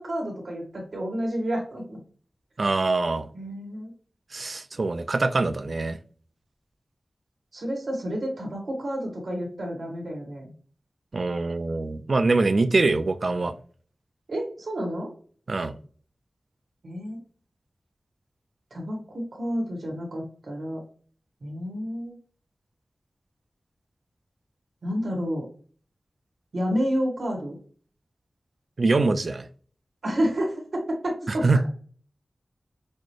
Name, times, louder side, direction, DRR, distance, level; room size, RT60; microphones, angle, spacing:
voice 1, 0.0-2.0 3.3-3.9 7.5-10.4 14.3-15.1 16.8-17.2 18.7-20.8 21.4-22.1 24.8-25.5 26.5-27.6 30.0-31.7, equal, 80° right, 0 dB, 1.9 m, -30 dB
voice 2, 2.6-3.3 4.3-6.0 11.1-13.6 15.5-15.8 28.8-29.5 31.3-31.7, right 3 dB, 60° right, 10 dB, 0.5 m, -24 dB
6.3 x 2.2 x 3.2 m, 0.43 s
wide cardioid pair, 95°, 0 cm